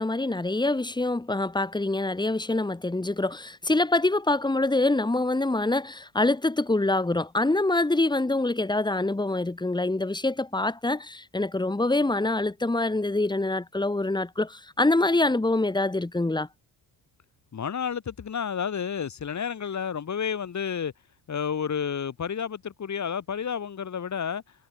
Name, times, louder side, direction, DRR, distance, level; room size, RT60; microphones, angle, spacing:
voice 1, 0.0-16.5, left 2 dB, 10° left, 2.4 m, -25 dB
voice 2, 17.5-20.9 21.3-24.4, left 7 dB, 45° left, 5.4 m, -30 dB
supercardioid pair, 75°, 39 cm